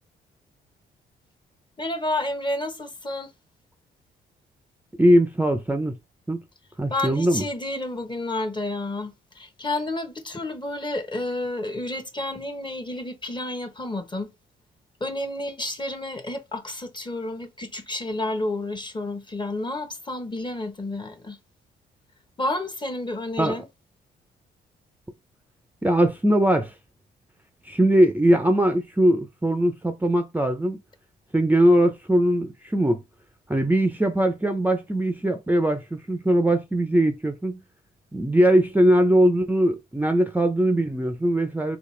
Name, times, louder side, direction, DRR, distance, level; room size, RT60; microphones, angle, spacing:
voice 1, 1.8-3.3 6.9-14.3 15.0-21.4 22.4-23.7, left 2 dB, 25° left, 0.9 m, -30 dB
voice 2, 5.0-5.9 6.3-6.4 6.8-7.4 23.4-23.6 25.8-26.7 27.6-30.8 31.3-33.0 33.5-37.6 38.1-41.8, right 1 dB, 10° right, 0.5 m, -21 dB
4.0 x 2.4 x 3.1 m
supercardioid pair, 60°, 19 cm